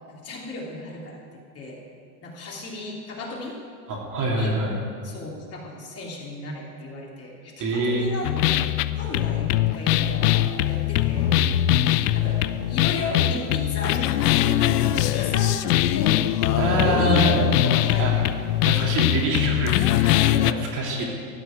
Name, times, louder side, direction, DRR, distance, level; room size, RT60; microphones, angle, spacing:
voice 1, 0.1-1.2 1.5-1.8 2.2-3.6 4.3-4.6 5.0-11.8 12.1-12.4 12.7-16.2 16.8-18.3 20.3-20.6 21.0-21.1, left 2 dB, 30° left, -3 dB, 3.1 m, -34 dB
voice 2, 3.9-4.7 7.6-8.0 16.6-17.3 18.0-18.1 18.6-21.0, right 2 dB, 40° right, -2 dB, 3.1 m, -25 dB
sound 1, 8.2-20.5, left 13 dB, 70° left, 0.7 m, -22 dB
14.5 x 6.1 x 9.2 m, 2.1 s
hypercardioid pair, 115°, 48 cm